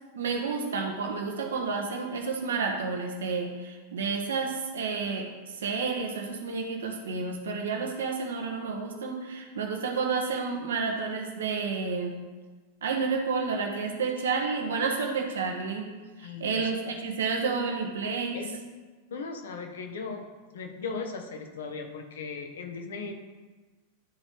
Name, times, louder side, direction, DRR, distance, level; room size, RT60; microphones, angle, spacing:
voice 1, 0.1-12.2 12.8-18.4, right 4 dB, 65° right, 3 dB, 1.1 m, -30 dB
voice 2, 16.2-16.7 18.3-18.6 19.1-20.3 20.5-23.1, left 4 dB, 65° left, 4 dB, 1.0 m, -37 dB
12.0 x 4.2 x 3.4 m, 1.3 s
figure-of-eight pair, 90°, 0 cm